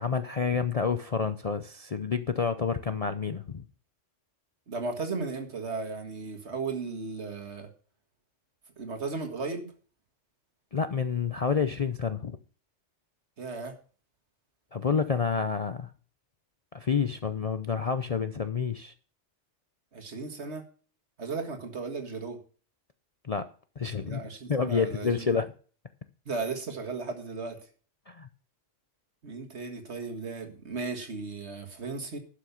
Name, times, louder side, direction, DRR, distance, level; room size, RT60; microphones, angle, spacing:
voice 1, 0.0-3.6 10.7-12.4 14.7-15.9 16.7-18.9 23.2-23.5 23.8-24.2 24.5-25.5 28.1-28.3, left 6 dB, 40° left, 10 dB, 0.5 m, -29 dB
voice 2, 4.7-7.7 8.8-9.7 13.4-13.7 19.9-20.6 21.2-22.4 24.0-25.4 26.3-27.6 29.2-32.2, right 4 dB, 60° right, 4 dB, 2.0 m, -35 dB
11.5 x 6.1 x 6.9 m, 0.41 s
omnidirectional pair, 1.3 m